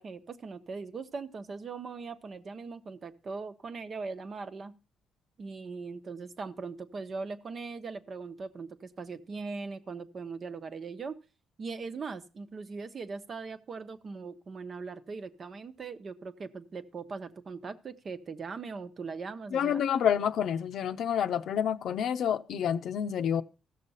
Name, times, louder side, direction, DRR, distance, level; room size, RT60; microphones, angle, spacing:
voice 1, 0.0-4.7 5.4-11.1 11.6-19.8, right 4 dB, 45° right, 1.0 m, -40 dB
voice 2, 19.5-23.4, left 8 dB, 70° left, 0.7 m, -28 dB
15.0 x 6.7 x 5.6 m
cardioid pair, 90°, 0 cm